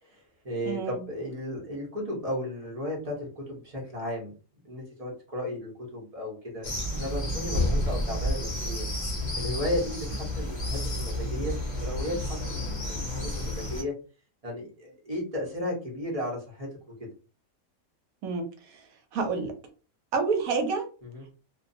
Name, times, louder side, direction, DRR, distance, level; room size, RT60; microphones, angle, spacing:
voice 1, 0.0-4.3 4.6-8.9 9.3-13.9 14.4-17.1 21.0-21.3, left 1 dB, 30° right, -2 dB, 0.8 m, -35 dB
voice 2, 0.7-1.0 18.2-18.4 19.1-19.5 20.1-20.9, right 4 dB, 80° right, 4 dB, 1.1 m, -28 dB
sound 1, 6.6-13.8, left 1 dB, 45° left, 0.6 m, -30 dB
2.5 x 2.2 x 2.6 m, 0.36 s
omnidirectional pair, 1.5 m